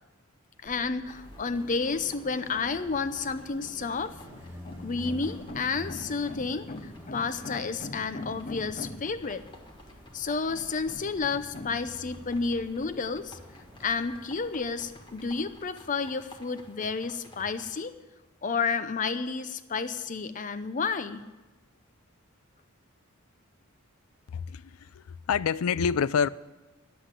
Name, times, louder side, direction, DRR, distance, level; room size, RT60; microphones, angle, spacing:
voice 1, 0.6-9.4 10.1-13.4 13.8-17.9 18.4-21.2, left 4 dB, 40° left, 0.7 m, -31 dB
Car passing by, 0.6-15.6, equal, 15° right, 1.6 m, -48 dB
sound 1, 1.1-17.8, left 1 dB, 20° left, 1.4 m, -54 dB
voice 2, 24.3-26.3, left 6 dB, 85° left, 0.4 m, -27 dB
10.0 x 7.9 x 9.8 m
head